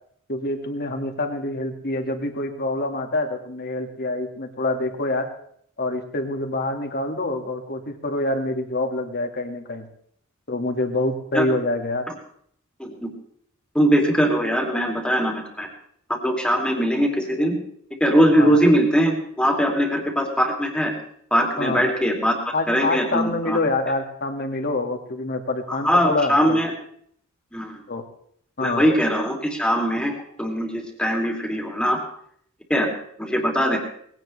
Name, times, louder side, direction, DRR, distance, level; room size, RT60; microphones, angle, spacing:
voice 1, 0.3-5.3 5.8-9.9 10.5-12.0 18.4-18.5 21.6-21.8 22.5-26.6 27.9-28.0 28.6-28.9, left 2 dB, 45° left, 5 dB, 1.9 m, -26 dB
voice 2, 12.8-13.1 13.7-15.7 16.1-17.5 18.0-20.9 21.3-23.6 25.7-26.7 27.5-27.8 28.6-30.1 30.4-32.0 32.7-32.9 33.2-33.8, equal, 5° left, 1 dB, 2.8 m, -21 dB
20.0 x 17.0 x 3.2 m, 0.65 s
head